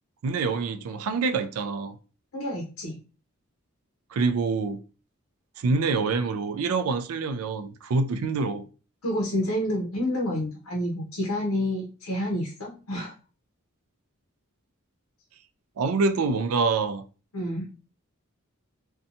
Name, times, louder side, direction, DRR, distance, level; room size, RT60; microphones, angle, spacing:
voice 1, 0.2-2.0 4.1-4.8 5.6-8.7 15.8-17.0, right 4 dB, 85° right, 0.4 m, -26 dB
voice 2, 2.3-3.0 9.0-13.1 17.3-17.7, left 1 dB, 90° left, 0.7 m, -29 dB
2.6 x 2.2 x 2.6 m
head